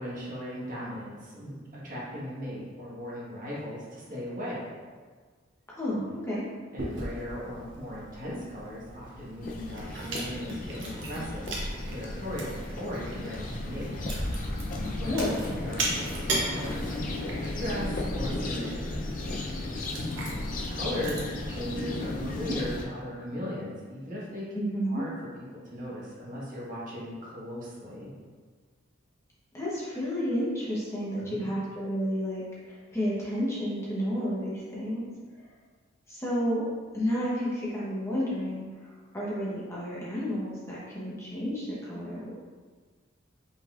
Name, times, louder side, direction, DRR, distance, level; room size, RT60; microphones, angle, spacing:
voice 1, 0.0-1.6 1.8-4.7 6.7-13.9 15.0-15.2 15.6-16.0 16.5-19.0 20.1-24.5 24.9-25.1 25.7-28.1 31.3-31.5, equal, 45° right, -7 dB, 1.3 m, -38 dB
voice 2, 5.8-6.4 15.0-15.5 24.5-25.0 29.5-35.0 36.1-36.6 36.9-42.3, equal, 15° left, -8 dB, 0.9 m, -31 dB
Chewing mastication, 6.8-22.5, right 2 dB, 65° right, 1.0 m, -39 dB
sound 1, 9.4-22.8, left 2 dB, 45° left, 0.5 m, -34 dB
5.4 x 3.9 x 2.4 m, 1.5 s
head